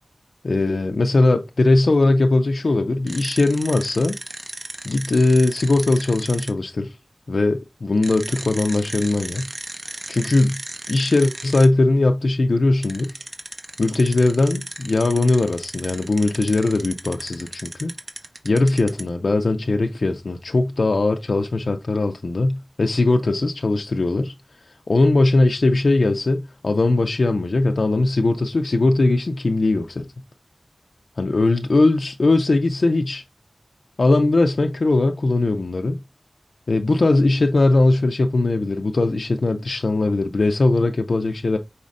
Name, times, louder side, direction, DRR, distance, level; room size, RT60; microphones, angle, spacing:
voice 1, 0.4-4.2 4.8-7.0 7.3-9.5 9.9-10.6 10.9-13.2 13.8-17.9 18.4-30.1 31.2-33.2 34.0-36.0 36.7-41.6, left 2 dB, 85° left, 0.4 m, -20 dB
sound 1, 3.1-6.5 8.0-11.7 12.8-19.1, right 2 dB, 50° right, 0.9 m, -35 dB
5.2 x 4.1 x 2.5 m
wide cardioid pair, 55°, 0 cm